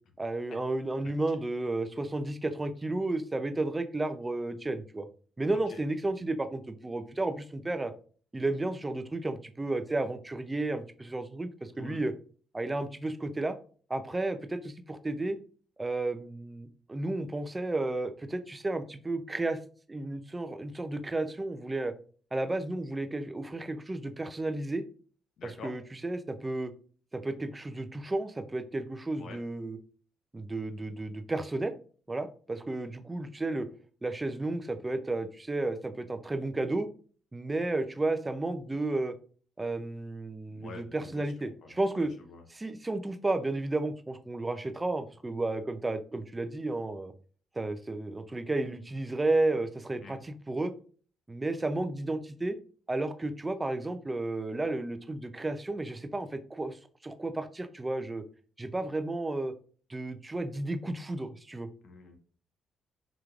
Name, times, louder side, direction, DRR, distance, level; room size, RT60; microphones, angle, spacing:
voice 1, 0.2-5.1 5.4-7.9 8.3-12.1 12.5-13.5 13.9-15.4 15.8-19.6 19.9-21.9 22.3-24.8 25.4-26.7 27.1-29.8 30.3-31.7 32.1-33.7 34.0-36.9 37.3-39.1 39.6-42.1 42.5-47.1 47.6-50.7 51.3-52.6 52.9-58.2 58.6-59.5 59.9-61.7, right 2 dB, 20° right, 9 dB, 0.4 m, -32 dB
voice 2, 25.4-25.7 29.1-29.4 40.5-42.4 50.0-50.2 61.8-62.1, left 4 dB, 65° left, 4 dB, 0.8 m, -47 dB
4.9 x 3.0 x 2.4 m, 0.43 s
cardioid pair, 90°, 0 cm